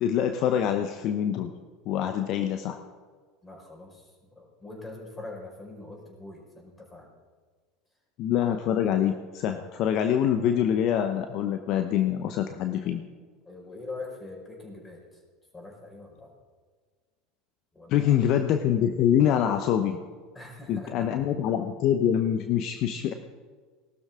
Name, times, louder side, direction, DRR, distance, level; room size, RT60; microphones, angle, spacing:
voice 1, 0.0-1.5 1.9-2.8 8.2-13.0 17.9-20.0 20.7-23.1, left 9 dB, 55° left, 8 dB, 0.8 m, -25 dB
voice 2, 3.4-7.1 13.4-15.2 15.5-16.3 17.7-18.1 20.3-20.9, left 2 dB, 15° left, 0 dB, 5.1 m, -43 dB
19.0 x 12.5 x 3.7 m, 1.5 s
hypercardioid pair, 80°, 0 cm